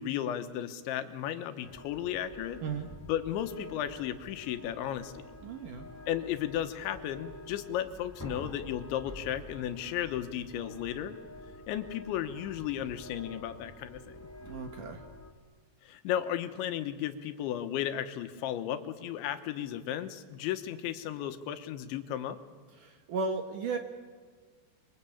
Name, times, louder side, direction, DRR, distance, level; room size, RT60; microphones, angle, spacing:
voice 1, 0.0-2.6 3.1-5.1 6.1-11.2 11.7-14.2 15.8-22.4, left 11 dB, 85° left, 9 dB, 3.6 m, -34 dB
sound 1, 1.6-15.3, left 1 dB, 5° left, 1.8 m, -48 dB
voice 2, 5.4-5.9 14.4-15.0 22.8-23.8, right 4 dB, 65° right, 5 dB, 2.2 m, -35 dB
26.5 x 24.0 x 8.6 m, 1.5 s
omnidirectional pair, 5.2 m